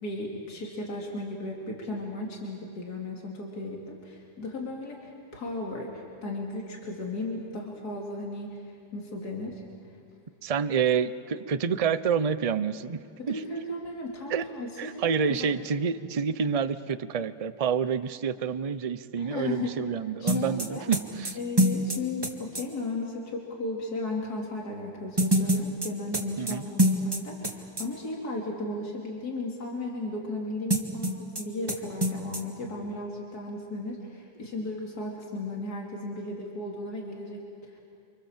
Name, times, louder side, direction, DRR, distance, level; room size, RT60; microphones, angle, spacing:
voice 1, 0.0-9.6 13.2-15.0 15.3-15.5 19.2-19.8 20.2-20.9 21.4-37.8, left 2 dB, 65° left, -1 dB, 3.5 m, -35 dB
voice 2, 10.4-13.0 13.3-13.4 14.3-14.5 14.8-21.4 26.4-26.6, right 6 dB, 70° right, 12 dB, 0.3 m, -28 dB
sound 1, 20.3-22.6 25.2-27.5 27.8-27.9 30.7-31.4 31.7-31.8 32.0-32.4, equal, 15° right, 1.7 m, -25 dB
29.5 x 26.5 x 7.4 m, 2.4 s
omnidirectional pair, 1.8 m